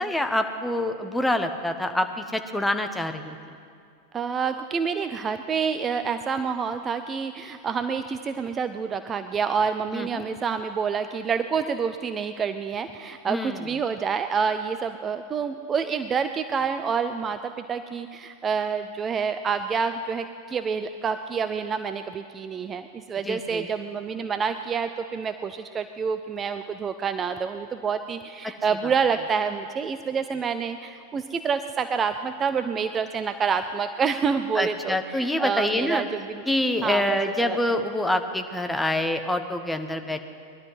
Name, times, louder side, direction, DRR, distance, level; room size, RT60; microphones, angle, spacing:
voice 1, 0.0-3.4 9.9-10.1 13.2-13.6 23.3-23.7 28.8-28.9 34.5-36.0 36.5-40.2, left 1 dB, 5° left, 6 dB, 1.0 m, -26 dB
voice 2, 4.1-36.4 36.8-37.8, right 6 dB, 20° right, 9 dB, 0.5 m, -28 dB
20.0 x 12.0 x 5.6 m, 2.3 s
figure-of-eight pair, 90°, 0 cm